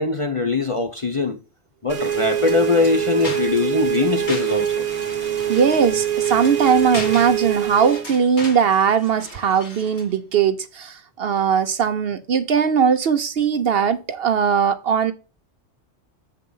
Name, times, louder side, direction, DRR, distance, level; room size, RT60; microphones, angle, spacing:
voice 1, 0.0-1.4 1.8-4.8, left 4 dB, 35° left, 0.6 m, -21 dB
sound 1, 1.9-8.1, right 10 dB, 35° right, 1.0 m, -24 dB
sound 2, 2.1-10.2, left 2 dB, 65° left, 2.5 m, -38 dB
voice 2, 5.5-15.1, right 7 dB, 60° right, 0.8 m, -19 dB
7.6 x 3.8 x 5.4 m
omnidirectional pair, 1.3 m